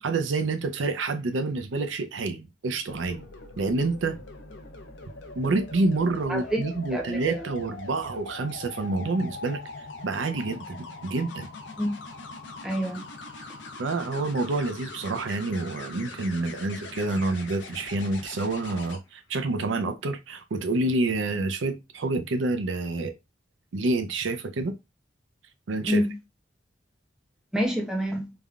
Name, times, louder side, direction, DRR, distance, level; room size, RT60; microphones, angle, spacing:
voice 1, 0.0-3.3 3.6-4.2 5.4-9.6 10.0-11.5 13.4-13.5 13.8-23.1 23.7-24.8 25.7-26.1, right 3 dB, 90° right, 0.5 m, -28 dB
sound 1, 2.9-19.0 20.9-21.2, left 3 dB, 65° left, 0.6 m, -42 dB
voice 2, 6.3-6.6 6.9-7.4 11.8-11.9 12.6-13.0 25.9-26.1 27.5-28.3, equal, 5° right, 0.7 m, -27 dB
3.4 x 2.2 x 2.4 m
head